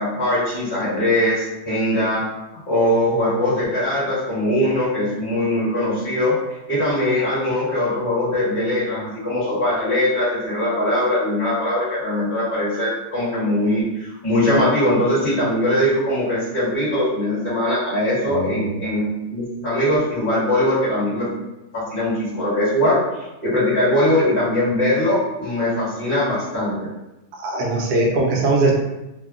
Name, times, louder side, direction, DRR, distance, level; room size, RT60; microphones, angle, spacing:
voice 1, 0.0-2.3 2.7-6.4 6.7-21.3 21.7-26.8, left 1 dB, 35° left, -11 dB, 1.5 m, -21 dB
voice 2, 18.3-18.8 27.4-28.7, right 2 dB, 85° right, -1 dB, 1.2 m, -20 dB
3.4 x 2.2 x 2.4 m, 0.96 s
omnidirectional pair, 1.7 m